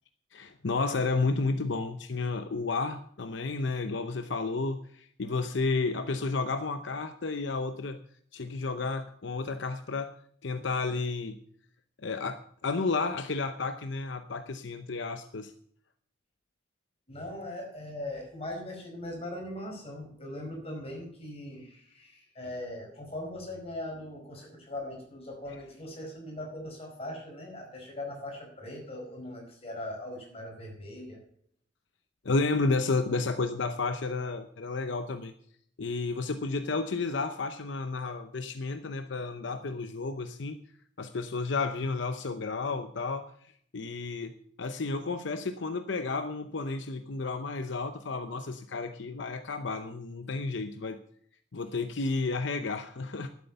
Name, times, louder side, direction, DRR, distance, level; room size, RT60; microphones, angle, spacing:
voice 1, 0.3-8.0 8.3-10.1 10.4-11.4 12.0-15.5 32.2-35.3 35.8-40.6 41.0-43.3 43.7-44.3 44.6-51.0 51.5-53.3, left 3 dB, 75° left, 9 dB, 0.7 m, -32 dB
voice 2, 17.1-31.2, left 1 dB, 30° left, 0 dB, 5.1 m, -40 dB
11.5 x 8.3 x 6.8 m, 0.62 s
head